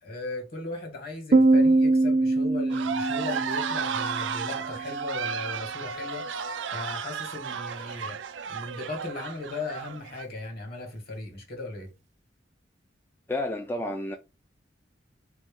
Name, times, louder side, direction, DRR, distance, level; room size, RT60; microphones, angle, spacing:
voice 1, 0.0-6.3 6.7-8.2 8.5-11.9, left 3 dB, 55° left, 1.8 m, -37 dB
Piano, 1.3-4.7, right 2 dB, 40° right, 0.6 m, -23 dB
sound 1, 2.7-10.2, right 6 dB, 80° right, 0.4 m, -33 dB
voice 2, 13.3-14.2, left 1 dB, 10° left, 0.4 m, -30 dB
3.8 x 3.1 x 3.6 m
head